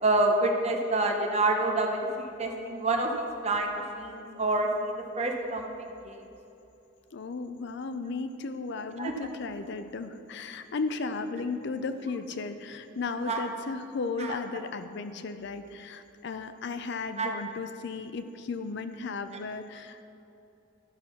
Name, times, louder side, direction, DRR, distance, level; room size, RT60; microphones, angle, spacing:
voice 1, 0.0-5.6 6.0-6.2 9.0-9.1 13.3-13.4 14.2-14.4 17.2-17.3, right 2 dB, 35° right, 2 dB, 1.0 m, -27 dB
voice 2, 7.1-20.0, left 4 dB, 60° left, 10 dB, 0.5 m, -35 dB
12.5 x 6.3 x 5.7 m, 2.9 s
head